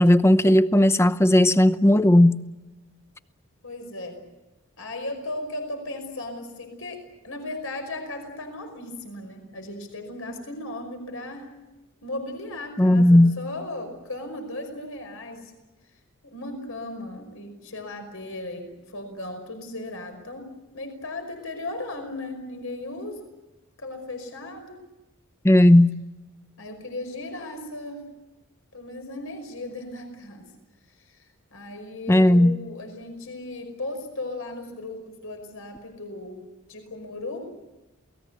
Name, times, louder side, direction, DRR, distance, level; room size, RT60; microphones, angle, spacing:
voice 1, 0.0-2.3 12.8-13.3 25.4-25.9 32.1-32.6, left 1 dB, 10° left, 0.8 m, -16 dB
voice 2, 3.6-4.2 4.8-11.5 12.0-15.5 16.2-20.5 20.7-23.3 23.8-24.8 26.6-28.0 28.7-30.4 31.0-36.4 36.7-37.4, left 2 dB, 70° left, 5.3 m, -36 dB
28.5 x 19.0 x 8.2 m
head